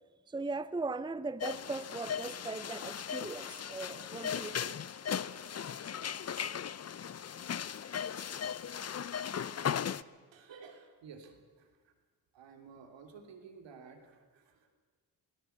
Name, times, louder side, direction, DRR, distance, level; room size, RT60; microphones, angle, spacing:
voice 1, 0.3-4.7, right 3 dB, 10° right, 14 dB, 0.7 m, -39 dB
sound 1, 1.4-10.0, left 8 dB, 35° left, 0.7 m, -37 dB
voice 2, 10.3-11.9 12.3-14.7, right 5 dB, 75° right, 4 dB, 3.2 m, -53 dB
21.0 x 16.5 x 8.0 m, 1.4 s
supercardioid pair, 50°, 45 cm